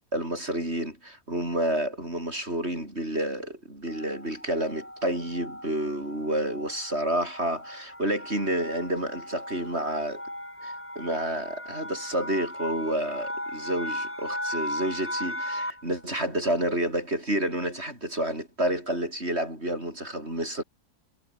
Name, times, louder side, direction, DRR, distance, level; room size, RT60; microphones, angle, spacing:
voice 1, 0.1-10.2 10.6-20.6, right 1 dB, 40° right, 8.4 m, -29 dB
sound 1, 3.9-16.0, left 1 dB, 5° left, 3.1 m, -37 dB
omnidirectional pair, 1.8 m